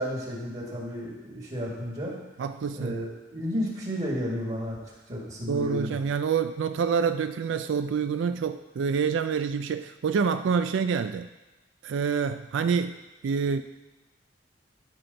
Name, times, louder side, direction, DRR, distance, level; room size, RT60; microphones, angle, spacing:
voice 1, 0.0-2.1 2.7-4.8 5.1-6.0, equal, 35° right, -3 dB, 1.8 m, -32 dB
voice 2, 2.4-3.0 5.5-11.3 11.8-13.0 13.2-13.6, right 6 dB, 75° right, 10 dB, 0.3 m, -27 dB
13.0 x 5.1 x 4.0 m, 1.1 s
head